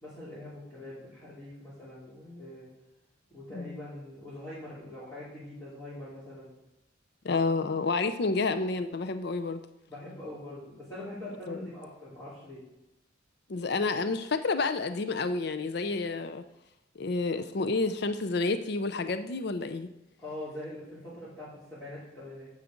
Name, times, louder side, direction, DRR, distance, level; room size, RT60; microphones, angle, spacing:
voice 1, 0.0-2.7 3.3-6.5 9.9-12.6 20.2-22.5, left 1 dB, 15° left, -13 dB, 3.1 m, -43 dB
voice 2, 7.2-9.6 11.5-11.6 13.5-16.4 17.0-19.9, left 3 dB, 55° left, 10 dB, 0.5 m, -29 dB
9.6 x 7.3 x 5.1 m, 0.90 s
head